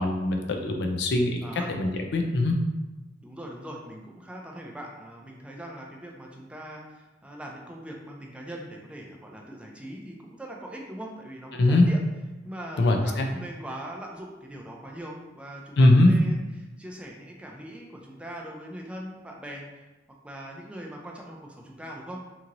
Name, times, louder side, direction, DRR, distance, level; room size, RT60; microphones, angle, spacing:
voice 1, 0.0-1.4 1.7-2.6 11.5-11.9 12.8-13.3 15.8-16.1, left 2 dB, 65° left, 3 dB, 0.4 m, -21 dB
voice 2, 1.4-1.7 3.2-12.0 12.4-19.9 20.2-22.2, right 1 dB, 5° right, -1 dB, 0.4 m, -41 dB
2.9 x 2.8 x 2.5 m, 1.1 s
head